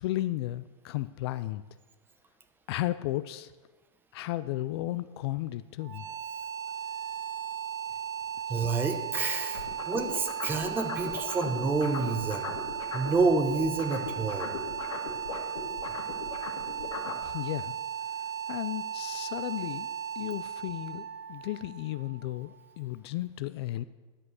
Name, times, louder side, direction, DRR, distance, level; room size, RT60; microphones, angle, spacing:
voice 1, 0.0-1.6 2.7-3.5 4.1-6.0 17.2-17.7 18.5-19.9 20.2-23.8, left 15 dB, 50° left, 14 dB, 0.4 m, -34 dB
sound 1, 5.8-22.7, right 8 dB, 35° right, 1.5 m, -36 dB
voice 2, 8.5-12.6 12.9-14.5, right 4 dB, 10° right, 8 dB, 0.9 m, -29 dB
sound 2, 9.5-13.2 13.5-17.2, left 7 dB, 90° left, 2.2 m, -39 dB
11.0 x 7.6 x 6.3 m, 1.3 s
supercardioid pair, 155°, 17 cm